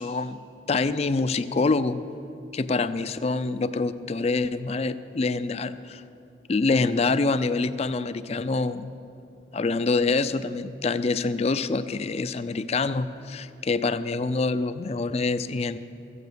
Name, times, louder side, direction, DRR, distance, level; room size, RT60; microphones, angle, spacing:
voice 1, 0.0-2.0 2.5-6.0 6.5-8.9 9.5-15.8, left 3 dB, 35° left, 13 dB, 0.4 m, -26 dB
14.5 x 8.3 x 6.9 m, 2.7 s
head